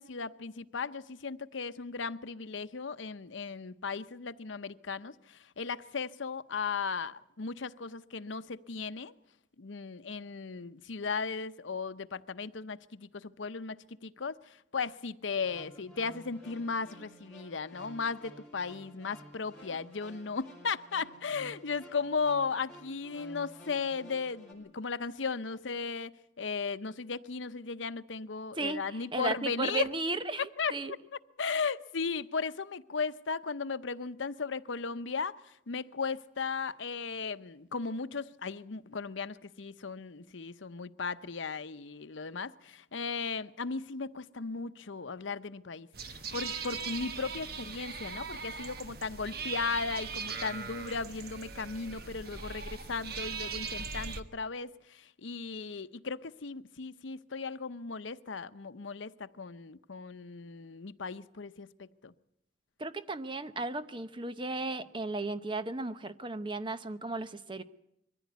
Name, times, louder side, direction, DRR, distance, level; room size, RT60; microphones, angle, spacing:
voice 1, 0.0-9.1 9.6-26.1 26.4-29.9 30.6-31.0 31.4-62.1, left 5 dB, 85° left, 12 dB, 0.8 m, -36 dB
sound 1, 15.3-24.5, equal, ahead, 5.5 m, -53 dB
voice 2, 28.6-30.9 62.8-67.6, right 3 dB, 25° right, 12 dB, 0.8 m, -35 dB
sound 2, 45.9-54.2, right 5 dB, 55° right, 1.1 m, -40 dB
22.5 x 15.0 x 9.4 m, 0.80 s
head